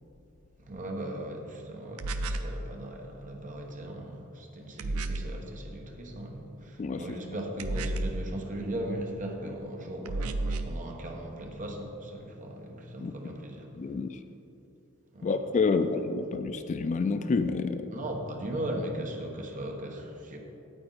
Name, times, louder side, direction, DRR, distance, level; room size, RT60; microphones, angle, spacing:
voice 1, 0.6-13.7 15.1-15.4 15.7-15.9 17.9-20.4, right 1 dB, 40° right, 1 dB, 1.1 m, -38 dB
sound 1, 2.0-2.6 4.8-5.4 7.6-8.3 10.1-10.8, right 2 dB, 80° right, 0.5 m, -31 dB
voice 2, 13.8-14.2 15.2-17.9, left 4 dB, 35° left, 9 dB, 0.3 m, -28 dB
9.0 x 8.5 x 4.1 m, 2.9 s
head